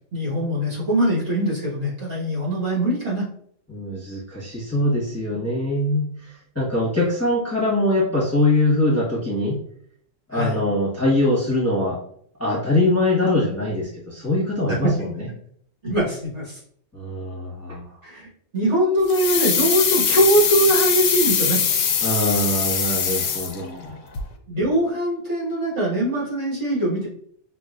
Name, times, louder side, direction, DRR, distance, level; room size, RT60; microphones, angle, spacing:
voice 1, 0.1-3.3 10.3-10.6 14.7-14.9 15.8-16.6 18.0-18.3 18.5-21.6 24.5-27.1, right 1 dB, 50° right, -6 dB, 1.9 m, -22 dB
voice 2, 3.7-9.6 10.3-12.0 12.4-15.2 16.9-17.8 22.0-24.2, left 1 dB, 10° left, -7 dB, 1.0 m, -23 dB
sound 1, 19.1-23.9 24.1-24.2, left 7 dB, 65° left, 0.9 m, -22 dB
5.8 x 2.7 x 2.5 m, 0.64 s
omnidirectional pair, 1.5 m